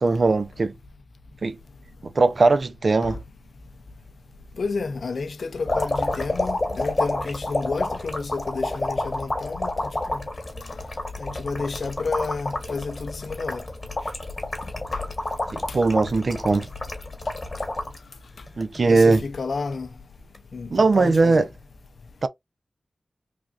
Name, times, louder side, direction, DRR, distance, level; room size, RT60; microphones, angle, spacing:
voice 1, 0.0-0.7 1.4-1.6 2.2-3.2 15.5-16.7 18.6-19.2 20.7-21.5 22.2-22.3, right 3 dB, 65° right, 0.4 m, -19 dB
voice 2, 4.6-10.2 10.7-10.8 11.2-13.6 14.6-15.0 15.7-15.8 18.9-19.9 20.5-21.5, left 4 dB, 80° left, 0.3 m, -31 dB
sound 1, 5.7-18.0 18.5-19.2 20.2-20.4, left 2 dB, 40° left, 1.2 m, -29 dB
3.3 x 2.4 x 2.4 m
wide cardioid pair, 65°, 0 cm